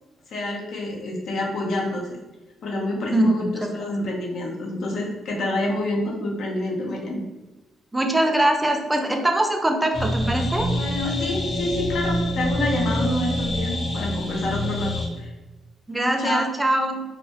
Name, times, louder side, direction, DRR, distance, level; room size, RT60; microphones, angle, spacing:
voice 1, 0.3-2.1 2.6-7.2 10.7-15.3 16.2-16.5, left 1 dB, 70° left, -1 dB, 0.6 m, -28 dB
voice 2, 3.1-3.8 7.9-10.7 15.9-17.0, right 1 dB, 15° right, 3 dB, 0.4 m, -22 dB
sound 1, 9.9-15.1, left 1 dB, 30° left, 0.7 m, -26 dB
2.2 x 2.1 x 2.7 m, 1.1 s
supercardioid pair, 60°, 0 cm